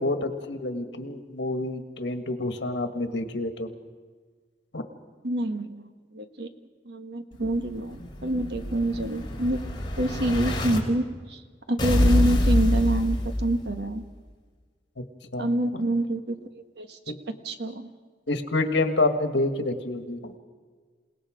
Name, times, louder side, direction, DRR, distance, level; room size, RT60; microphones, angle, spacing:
voice 1, 0.0-3.7 4.7-4.8 15.0-15.1 15.3-15.7 17.1-17.2 18.3-20.3, left 2 dB, 80° left, 7 dB, 1.6 m, -28 dB
voice 2, 5.2-6.5 6.8-9.6 10.0-11.4 11.7-14.0 15.4-17.0 17.4-17.9, right 1 dB, 65° right, 7 dB, 1.4 m, -27 dB
Explosion, 7.4-10.8 11.8-13.8, left 1 dB, 25° left, 3.1 m, -25 dB
28.0 x 18.5 x 5.1 m, 1.5 s
head